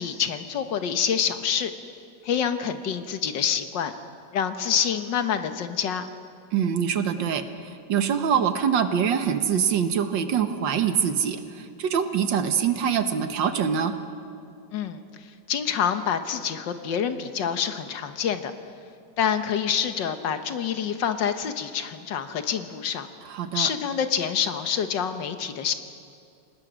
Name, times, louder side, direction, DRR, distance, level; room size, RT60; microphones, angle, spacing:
voice 1, 0.0-1.7 2.2-3.9 4.3-6.1 14.7-15.0 15.5-18.5 19.2-23.1 23.5-25.7, left 7 dB, 80° left, 9 dB, 1.8 m, -27 dB
voice 2, 6.5-13.9 23.3-23.7, right 7 dB, 90° right, 9 dB, 1.9 m, -24 dB
29.5 x 19.0 x 6.3 m, 2.4 s
omnidirectional pair, 2.0 m